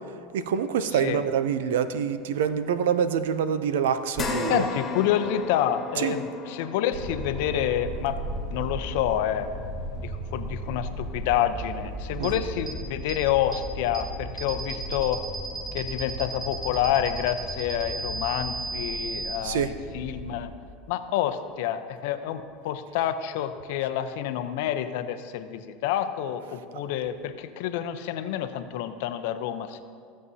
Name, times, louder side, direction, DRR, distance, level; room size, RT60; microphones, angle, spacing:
voice 1, 0.3-4.6 6.0-6.2 12.2-12.4 19.4-19.7, right 8 dB, 90° right, 12 dB, 0.5 m, -26 dB
sound 1, 4.1-12.8 13.2-13.3 14.8-14.9, left 3 dB, 25° left, 1.4 m, -37 dB
voice 2, 4.5-8.2 8.5-9.5 10.0-15.2 15.7-20.5 20.9-29.8, left 11 dB, 75° left, 10 dB, 0.6 m, -28 dB
sound 2, 6.9-20.5, right 1 dB, 40° right, 1.4 m, -37 dB
sound 3, 12.2-12.3 12.7-12.8 13.1-13.2 13.5-13.6 13.9-14.0 14.4-19.4, right 3 dB, 5° right, 1.0 m, -34 dB
15.5 x 7.4 x 2.8 m, 2.1 s
supercardioid pair, 120°, 0 cm